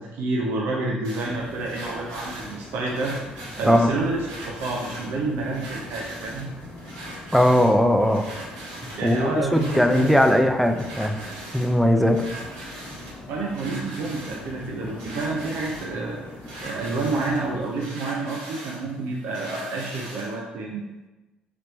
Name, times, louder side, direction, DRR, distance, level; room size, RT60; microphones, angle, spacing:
voice 1, 0.0-3.1 3.6-6.5 9.0-10.1 13.3-16.2 16.6-20.8, right 3 dB, 70° right, -2 dB, 0.5 m, -29 dB
sound 1, 1.0-20.4, right 1 dB, 90° right, 1.0 m, -41 dB
sound 2, 1.2-17.6, left 1 dB, 45° left, 0.9 m, -42 dB
voice 2, 7.3-8.2 8.8-11.2 11.5-12.3, equal, ahead, 6 dB, 0.5 m, -19 dB
3.3 x 3.1 x 3.9 m, 1.1 s
hypercardioid pair, 60°, 4 cm